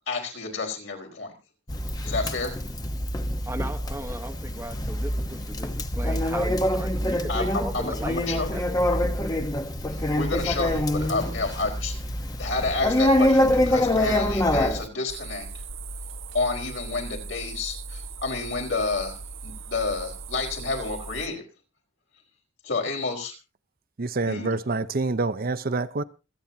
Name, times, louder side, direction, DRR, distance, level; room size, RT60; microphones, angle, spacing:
voice 1, 0.1-1.3 2.0-2.5 7.3-8.6 8.9-9.1 9.9-11.9 12.4-15.6 16.3-21.4 22.6-23.3 24.3-24.6, left 3 dB, 70° left, 4.7 m, -30 dB
Conversation, 1.7-14.9, left 1 dB, 20° left, 1.0 m, -25 dB
voice 2, 3.5-8.8, right 1 dB, 15° right, 1.1 m, -37 dB
sound 1, 15.1-21.3, right 3 dB, 85° right, 1.3 m, -38 dB
voice 3, 24.0-26.0, right 3 dB, 50° right, 0.7 m, -26 dB
26.5 x 9.0 x 2.8 m
head